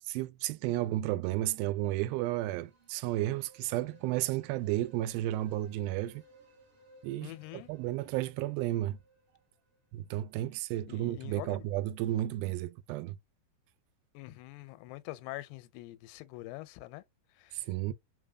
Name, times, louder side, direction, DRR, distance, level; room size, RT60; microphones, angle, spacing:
voice 1, 0.1-6.2 7.0-9.0 9.9-13.2 17.5-17.9, right 15 dB, 80° right, 2.3 m, -33 dB
sound 1, 1.6-10.4, right 1 dB, 45° right, 2.2 m, -62 dB
voice 2, 7.2-7.7 10.9-11.7 14.1-17.0 17.3-17.7, left 18 dB, 85° left, 2.5 m, -44 dB
5.4 x 3.7 x 2.2 m
omnidirectional pair, 4.5 m